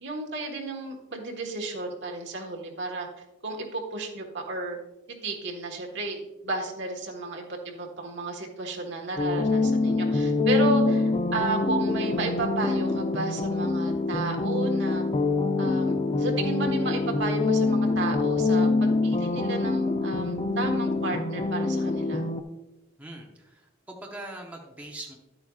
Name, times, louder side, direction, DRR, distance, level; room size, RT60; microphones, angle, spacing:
voice 1, 0.0-3.1 3.4-4.8 5.1-15.0 15.6-22.2, right 3 dB, 60° right, 1 dB, 1.5 m, -33 dB
sound 1, 9.2-22.4, left 3 dB, 25° left, 0.5 m, -25 dB
voice 2, 23.0-25.2, right 1 dB, 10° right, -1 dB, 0.9 m, -42 dB
11.5 x 8.7 x 2.4 m, 1.0 s
head